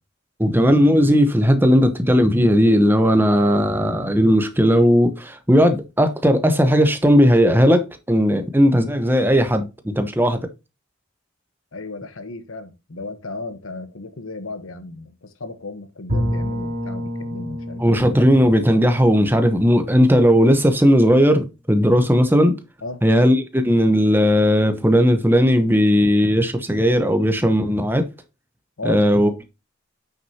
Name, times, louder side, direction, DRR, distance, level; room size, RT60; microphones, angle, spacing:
voice 1, 0.4-10.4 17.8-22.6 23.0-28.1 28.8-29.4, equal, 10° right, 0.8 m, -16 dB
voice 2, 11.7-17.8 22.8-23.0 28.8-29.0, left 3 dB, 80° left, 1.1 m, -34 dB
Bowed string instrument, 16.1-20.9, equal, 35° right, 2.8 m, -30 dB
8.7 x 6.3 x 2.8 m
head